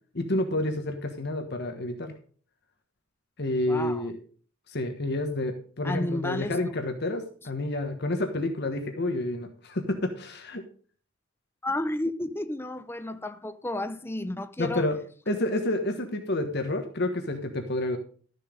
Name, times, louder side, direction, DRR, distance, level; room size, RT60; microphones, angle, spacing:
voice 1, 0.1-2.1 3.4-4.2 4.7-10.6 14.6-15.0 15.3-18.0, left 1 dB, 55° left, 1.3 m, -29 dB
voice 2, 3.7-4.1 5.8-6.7 11.6-14.9, left 1 dB, 10° left, 0.6 m, -32 dB
12.5 x 6.7 x 5.1 m
head